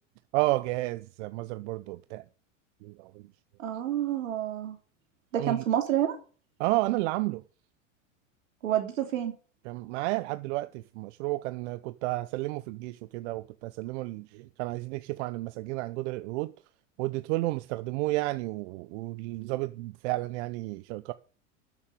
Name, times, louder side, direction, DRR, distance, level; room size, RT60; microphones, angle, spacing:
voice 1, 0.3-2.2 2.8-3.2 5.4-5.6 6.6-7.4 9.7-16.5 17.0-21.1, right 20 dB, 60° right, 0.8 m, -32 dB
voice 2, 3.6-4.8 5.3-6.2 8.6-9.3, right 11 dB, 80° right, 3.3 m, -28 dB
12.5 x 7.4 x 6.5 m
hypercardioid pair, 95°, 38 cm